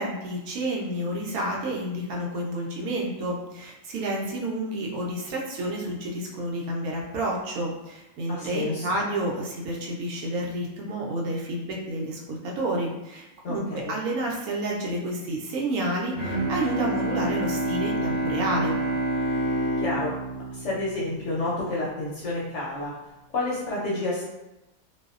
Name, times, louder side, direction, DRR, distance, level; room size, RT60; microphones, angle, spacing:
voice 1, 0.0-18.8, right 1 dB, 75° right, -2 dB, 1.0 m, -30 dB
voice 2, 8.3-8.9 13.4-13.9 19.8-22.9 23.3-24.2, left 2 dB, 65° left, -6 dB, 0.8 m, -30 dB
Bowed string instrument, 16.1-21.8, right 2 dB, 10° left, 0.7 m, -28 dB
2.6 x 2.1 x 2.3 m, 0.95 s
omnidirectional pair, 1.6 m